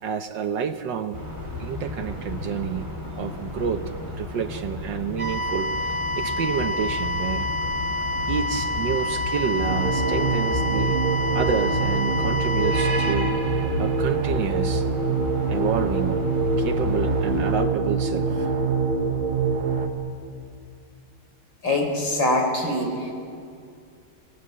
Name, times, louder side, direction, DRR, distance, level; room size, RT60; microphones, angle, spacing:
voice 1, 0.0-1.2 1.6-2.9 3.2-7.5 8.3-11.0 11.3-13.4 13.8-14.9 15.5-16.2 16.6-18.5, right 7 dB, 65° right, 8 dB, 1.5 m, -29 dB
sound 1, 1.1-17.7, left 3 dB, 10° right, 4.2 m, -33 dB
sound 2, 5.2-13.1, left 1 dB, 35° right, 7.8 m, -28 dB
sound 3, 9.7-19.9, right 4 dB, 80° right, 2.6 m, -24 dB
voice 2, 21.6-23.1, left 1 dB, 60° left, 3 dB, 4.8 m, -23 dB
26.5 x 18.0 x 8.6 m, 2.3 s
omnidirectional pair, 2.3 m